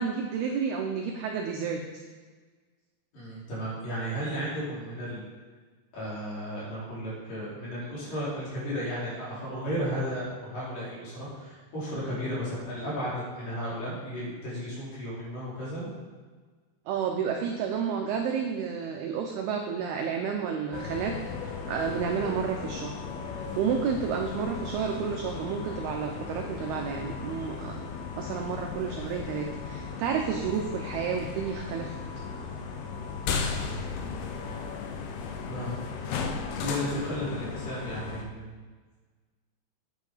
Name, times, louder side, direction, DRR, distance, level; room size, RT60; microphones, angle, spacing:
voice 1, 0.0-2.0 16.9-21.1 21.4-23.0 23.4-27.8 28.1-32.0, right 6 dB, 85° right, 2 dB, 2.2 m, -31 dB
voice 2, 3.1-5.2 5.9-15.9 33.5-33.8 35.5-35.7 36.6-38.6, equal, 45° left, -8 dB, 5.0 m, -34 dB
sound 1, 20.7-38.3, left 5 dB, 80° left, 2.3 m, -36 dB
9.5 x 8.4 x 5.0 m, 1.4 s
omnidirectional pair, 5.5 m